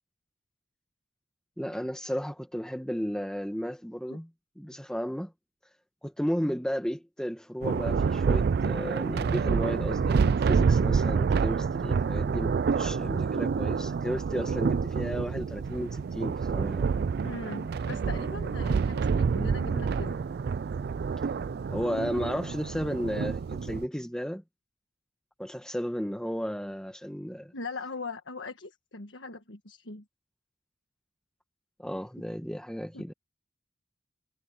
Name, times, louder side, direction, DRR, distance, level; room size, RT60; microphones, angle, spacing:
voice 1, 1.6-4.3 4.6-5.3 6.0-16.9 21.7-24.4 25.4-27.5 31.8-33.1, equal, 5° left, 1.3 m, -34 dB
Thunder, 7.6-23.8, right 5 dB, 55° right, 0.3 m, -28 dB
voice 2, 17.2-20.2 27.5-30.0 32.9-33.0, left 3 dB, 70° left, 1.5 m, -40 dB
head